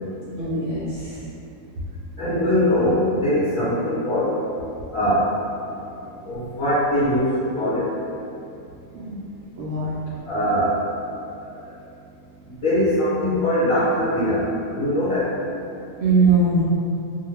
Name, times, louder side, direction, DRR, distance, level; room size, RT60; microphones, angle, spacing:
voice 1, 0.4-1.2 5.9-6.1 8.9-9.1 9.6-9.9 16.0-16.6, right 3 dB, 70° right, -9 dB, 0.8 m, -21 dB
voice 2, 2.2-4.4 4.9-5.3 6.2-7.9 10.2-10.8 11.4-11.7 12.5-14.5 14.7-15.3, left 1 dB, 70° left, -12 dB, 1.1 m, -22 dB
2.4 x 2.2 x 3.0 m, 2.6 s
omnidirectional pair, 1.5 m